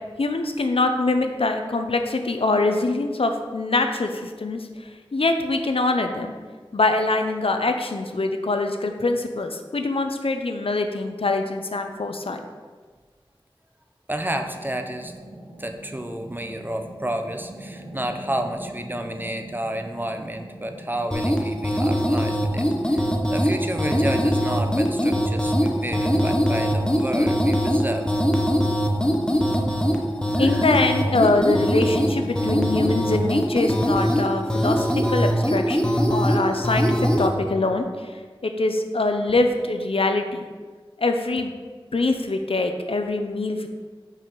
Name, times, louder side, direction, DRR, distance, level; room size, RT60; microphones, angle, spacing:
voice 1, 0.2-4.7 5.1-6.4 6.7-12.4 30.4-38.1 38.4-40.4 41.0-41.5 41.9-43.7, left 2 dB, 80° left, 5 dB, 0.6 m, -24 dB
voice 2, 14.1-15.1 15.6-28.1 30.4-30.6, right 1 dB, 20° right, 5 dB, 0.6 m, -30 dB
sound 1, 14.3-33.3, right 1 dB, 80° right, 1.4 m, -41 dB
sound 2, 21.1-37.3, equal, 10° left, 0.8 m, -22 dB
5.5 x 4.8 x 5.3 m, 1.5 s
wide cardioid pair, 50°, 9 cm